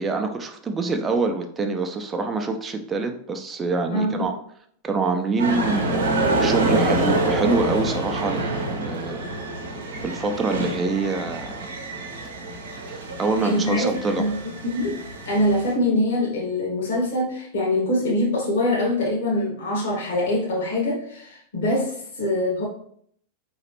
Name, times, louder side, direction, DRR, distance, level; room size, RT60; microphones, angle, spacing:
voice 1, 0.0-4.3 4.8-9.3 10.0-11.7 12.9-14.2, right 3 dB, 15° right, 5 dB, 0.6 m, -25 dB
voice 2, 3.9-4.2 13.4-14.4 14.6-22.6, left 1 dB, 55° left, -3 dB, 1.3 m, -24 dB
sound 1, 5.4-15.7, right 2 dB, 65° right, 0.8 m, -26 dB
4.8 x 3.1 x 3.0 m, 0.63 s
figure-of-eight pair, 90°, 0 cm